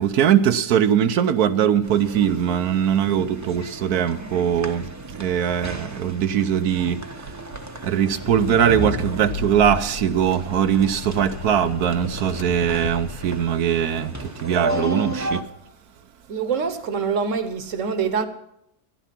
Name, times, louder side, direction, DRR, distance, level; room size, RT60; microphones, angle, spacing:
voice 1, 0.0-4.8 5.2-7.0 7.8-14.1 14.4-15.4, right 9 dB, 70° right, 1.2 m, -21 dB
sound 1, 1.8-15.4, right 1 dB, 15° right, 0.8 m, -34 dB
Accelerating revving vroom, 8.3-13.7, left 6 dB, 70° left, 1.3 m, -34 dB
voice 2, 16.3-18.3, right 6 dB, 55° right, 1.4 m, -25 dB
13.5 x 11.5 x 5.8 m
omnidirectional pair, 1.7 m